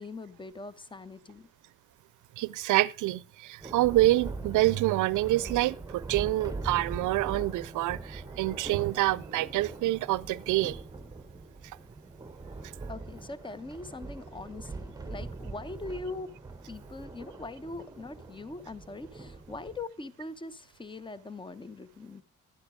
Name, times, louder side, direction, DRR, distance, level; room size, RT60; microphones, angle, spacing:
voice 1, 0.0-1.5 12.9-16.4 16.7-22.2, left 3 dB, 15° left, 0.9 m, -41 dB
voice 2, 2.4-10.8 12.6-12.7, right 17 dB, 80° right, 0.6 m, -27 dB
Thunder, 3.6-19.8, right 3 dB, 10° right, 1.0 m, -42 dB
11.5 x 9.7 x 5.0 m
cardioid pair, 90°, 30 cm